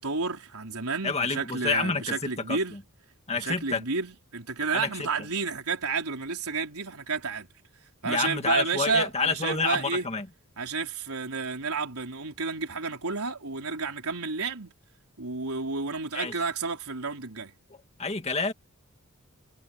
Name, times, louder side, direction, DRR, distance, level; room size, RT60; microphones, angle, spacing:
voice 1, 0.0-2.8 3.3-7.5 8.0-10.1 10.6-14.7 15.2-17.5, right 4 dB, 75° right, 4.2 m, -31 dB
voice 2, 1.0-2.2 2.5-2.6 3.3-3.8 4.7-5.1 8.0-10.3 16.1-16.3 18.0-18.5, left 4 dB, 30° left, 1.9 m, -28 dB
head